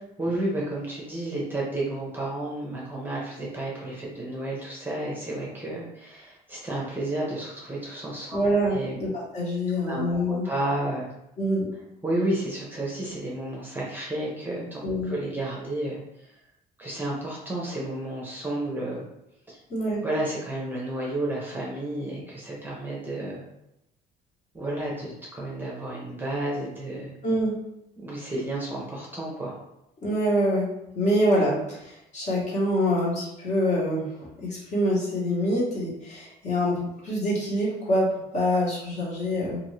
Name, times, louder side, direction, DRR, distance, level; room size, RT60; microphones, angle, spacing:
voice 1, 0.2-8.4 8.7-8.9 9.9-11.1 12.0-16.4 16.8-19.1 19.5-19.6 20.0-23.4 24.5-27.1 28.0-29.5, right 1 dB, 10° right, -4 dB, 0.7 m, -31 dB
voice 2, 8.3-10.4 11.4-11.7 14.8-15.1 19.7-20.0 27.2-27.6 30.0-39.6, equal, 45° left, -6 dB, 1.3 m, -25 dB
2.6 x 2.6 x 3.1 m, 0.85 s
cardioid pair, 110°, 17 cm